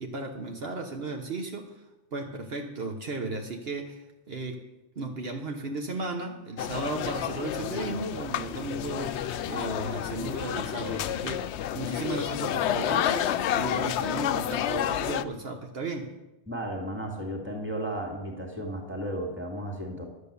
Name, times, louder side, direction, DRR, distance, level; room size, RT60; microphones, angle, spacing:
voice 1, 0.0-1.8 2.1-4.6 5.0-16.1, right 3 dB, 65° right, 3 dB, 1.3 m, -35 dB
sound 1, 6.6-15.2, left 10 dB, 85° left, 0.9 m, -30 dB
voice 2, 16.5-20.1, right 1 dB, 10° right, 1 dB, 2.3 m, -34 dB
11.5 x 8.2 x 6.9 m, 0.98 s
omnidirectional pair, 1.1 m